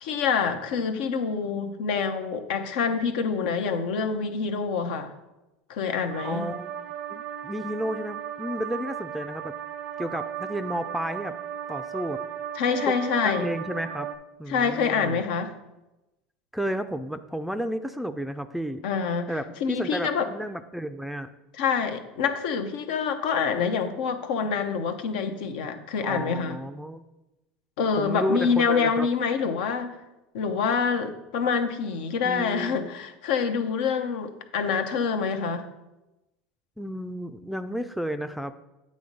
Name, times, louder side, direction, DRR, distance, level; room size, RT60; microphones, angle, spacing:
voice 1, 0.0-5.1 5.7-6.5 12.6-13.5 14.5-15.5 18.8-19.3 19.6-20.3 21.6-26.6 27.8-29.9 30.3-35.7, left 6 dB, 75° left, 7 dB, 0.7 m, -26 dB
sound 1, 6.1-14.2, right 9 dB, 85° right, 0.5 m, -36 dB
voice 2, 6.2-6.7 7.1-9.5 10.0-11.3 11.7-12.2 12.9-13.0 13.2-14.1 14.4-15.2 16.5-18.8 19.3-21.3 26.0-27.0 28.0-29.1 32.2-32.9 36.8-38.5, equal, ahead, 9 dB, 0.4 m, -32 dB
8.5 x 3.1 x 5.3 m, 0.99 s
supercardioid pair, 100°, 5 cm